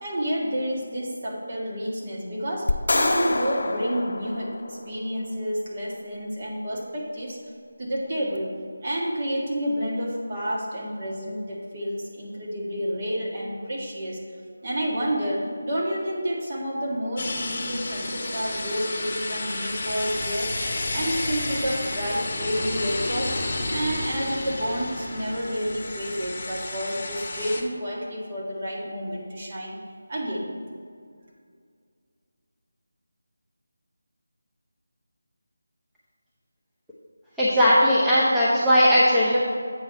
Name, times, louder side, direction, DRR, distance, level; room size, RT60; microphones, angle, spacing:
voice 1, 0.0-7.4 7.8-14.2 14.6-23.3 23.7-29.7 30.1-30.5, equal, 40° right, -3 dB, 1.7 m, -29 dB
sound 1, 2.7-5.1, left 2 dB, 65° left, 0.5 m, -26 dB
sound 2, 17.2-27.6, left 2 dB, 40° left, 1.1 m, -31 dB
voice 2, 37.4-39.4, equal, 5° right, -11 dB, 0.7 m, -18 dB
7.9 x 4.6 x 5.5 m, 2.2 s
figure-of-eight pair, 165°, 0 cm